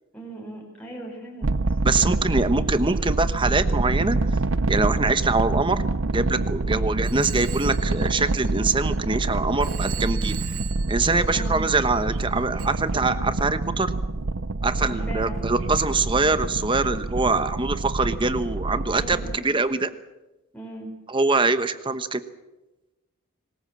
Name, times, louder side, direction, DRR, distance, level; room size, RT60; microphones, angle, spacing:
voice 1, 0.1-1.5 6.7-6.9 11.3-11.7 14.8-15.4 18.9-19.5 20.5-20.9, right 1 dB, 5° left, -2 dB, 5.3 m, -37 dB
sound 1, 1.4-19.4, right 2 dB, 60° right, 0.7 m, -26 dB
voice 2, 1.8-4.2 4.7-5.8 6.1-10.4 10.9-13.9 14.6-19.9 21.1-22.2, right 3 dB, 20° right, 11 dB, 1.1 m, -24 dB
Telephone, 7.0-9.2 9.6-11.9 12.6-12.7, right 13 dB, 80° right, 2.4 m, -40 dB
26.0 x 20.0 x 7.4 m, 1.1 s
head